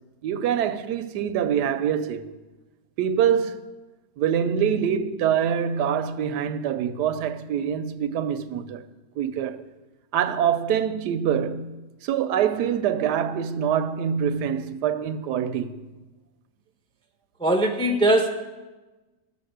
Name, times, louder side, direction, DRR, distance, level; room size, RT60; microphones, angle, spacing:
voice 1, 0.2-2.3 3.0-3.6 4.2-8.9 9.2-9.7 10.1-15.8, right 8 dB, 85° right, 1.2 m, -25 dB
voice 2, 17.4-18.3, right 1 dB, 5° left, 0.5 m, -20 dB
12.0 x 5.5 x 7.9 m
omnidirectional pair, 1.7 m